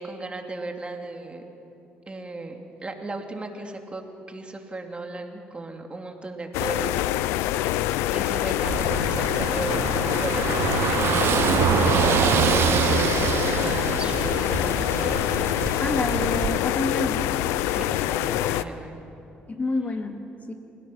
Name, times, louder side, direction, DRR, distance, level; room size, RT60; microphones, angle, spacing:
voice 1, 0.0-1.4 2.1-7.1 7.4-7.8 8.1-11.7 12.0-13.1 13.4-15.3 17.7-19.0, right 2 dB, 25° right, 3 dB, 2.7 m, -36 dB
sound 1, 6.5-18.6, left 13 dB, 85° left, 0.5 m, -25 dB
Car passing by / Engine, 8.7-16.6, right 9 dB, 65° right, 0.8 m, -25 dB
voice 2, 15.8-17.2 19.5-20.2 20.5-20.6, left 3 dB, 35° left, 4 dB, 2.2 m, -27 dB
27.0 x 16.5 x 6.3 m, 2.8 s
supercardioid pair, 65°, 4 cm